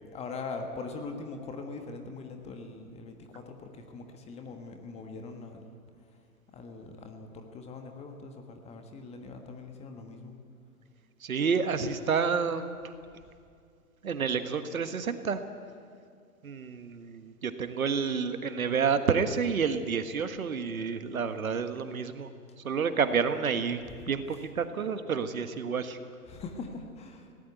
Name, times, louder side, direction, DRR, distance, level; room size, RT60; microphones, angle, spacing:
voice 1, 0.0-5.7 6.5-10.4 24.0-24.1 26.3-27.3, left 4 dB, 15° left, 5 dB, 1.6 m, -42 dB
voice 2, 11.2-12.7 14.0-15.4 16.4-22.3 22.6-26.0, right 6 dB, 65° right, 10 dB, 1.5 m, -29 dB
20.5 x 18.0 x 8.2 m, 2.3 s
figure-of-eight pair, 125°, 45 cm